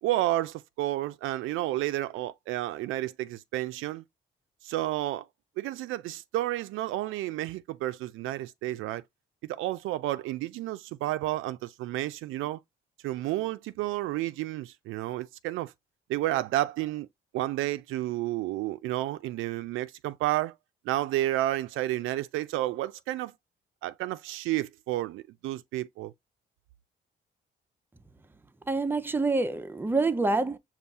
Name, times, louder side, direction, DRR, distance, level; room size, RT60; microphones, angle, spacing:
voice 1, 0.0-4.0 4.6-5.3 5.6-9.0 9.4-12.6 13.0-15.7 16.1-17.1 17.3-20.5 20.8-23.3 23.8-26.1, right 15 dB, 90° right, 0.4 m, -31 dB
voice 2, 28.7-30.6, right 3 dB, 10° right, 0.5 m, -26 dB
5.4 x 2.4 x 3.4 m
cardioid pair, 90°, 20 cm